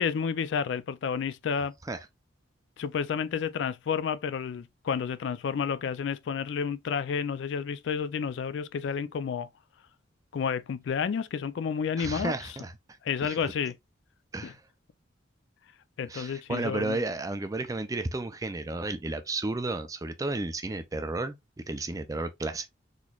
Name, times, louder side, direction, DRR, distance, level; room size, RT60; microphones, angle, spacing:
voice 1, 0.0-1.7 2.8-9.5 10.3-12.3 13.0-13.8 14.4-14.5 16.0-17.0, left 6 dB, 65° left, 0.3 m, -30 dB
voice 2, 12.0-12.7 13.2-13.4 14.3-14.6 16.1-21.4 21.7-22.7, right 2 dB, 20° right, 0.4 m, -32 dB
4.1 x 3.0 x 2.3 m
head